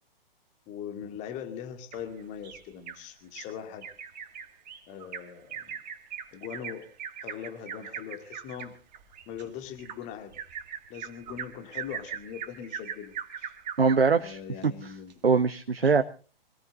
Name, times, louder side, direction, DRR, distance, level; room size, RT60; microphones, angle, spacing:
voice 1, 0.7-3.9 4.9-5.8 6.3-6.9 7.2-8.8 9.3-10.4 10.9-13.6 14.2-15.1 15.8-16.0, left 8 dB, 25° left, 7 dB, 2.2 m, -41 dB
Bird vocalization bird call bird song, 1.9-3.0 3.3-3.5 3.8-14.2 14.6-14.7 15.1-15.2, right 8 dB, 45° right, 2.0 m, -40 dB
voice 2, 13.8-14.9 15.2-16.0, right 5 dB, 75° right, 9 dB, 1.1 m, -23 dB
25.0 x 18.0 x 2.5 m, 0.36 s
figure-of-eight pair, 125°, 30 cm